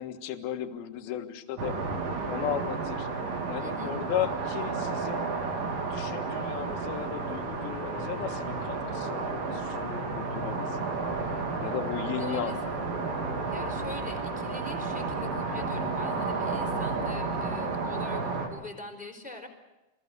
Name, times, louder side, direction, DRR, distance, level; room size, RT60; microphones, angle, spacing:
voice 1, 0.0-1.7 2.2-3.1 3.5-5.3 5.8-10.9 11.6-12.6, left 10 dB, 60° left, 6 dB, 2.9 m, -35 dB
sound 1, 1.6-18.5, right 4 dB, 80° right, 6.2 m, -32 dB
voice 2, 3.6-3.9 12.0-12.7 13.5-19.5, left 2 dB, ahead, 3 dB, 3.4 m, -43 dB
sound 2, 7.0-18.5, left 2 dB, 85° left, 4.3 m, -42 dB
26.5 x 21.0 x 6.7 m, 1.0 s
omnidirectional pair, 5.6 m